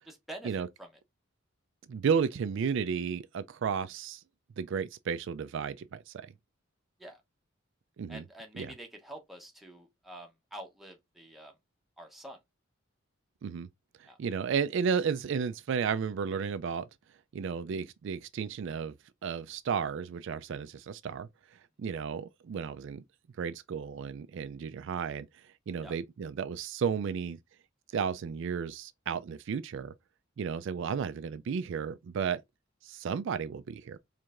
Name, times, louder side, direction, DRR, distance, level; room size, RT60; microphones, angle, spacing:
voice 1, 0.1-0.9 7.0-7.2 8.1-11.5 12.0-12.4 14.1-14.2 25.8-26.0, right 1 dB, ahead, 1.0 m, -47 dB
voice 2, 1.9-4.2 4.6-6.3 8.0-8.2 8.5-8.7 13.4-13.7 14.2-16.9 17.3-18.9 19.2-21.3 21.8-23.0 23.4-25.3 25.7-27.4 27.9-29.9 30.4-32.4 32.8-34.0, right 6 dB, 65° right, 0.3 m, -33 dB
4.6 x 3.3 x 2.4 m
head